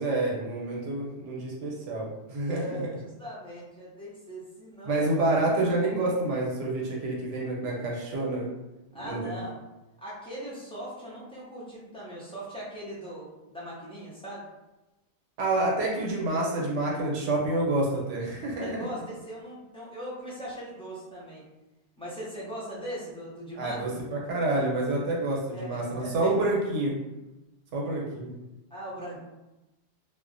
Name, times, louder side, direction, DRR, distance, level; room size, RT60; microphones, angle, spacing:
voice 1, 0.0-3.0 4.8-8.5 9.0-9.4 15.4-18.7 23.6-27.0 27.7-28.3, right 2 dB, 90° right, -3 dB, 1.0 m, -28 dB
voice 2, 2.5-5.1 8.9-9.6 10.0-14.5 18.6-21.4 22.0-24.0 25.5-25.7 26.0-26.4 28.7-29.2, equal, 10° left, -7 dB, 0.4 m, -40 dB
2.4 x 2.0 x 2.5 m, 1.0 s
omnidirectional pair, 1.2 m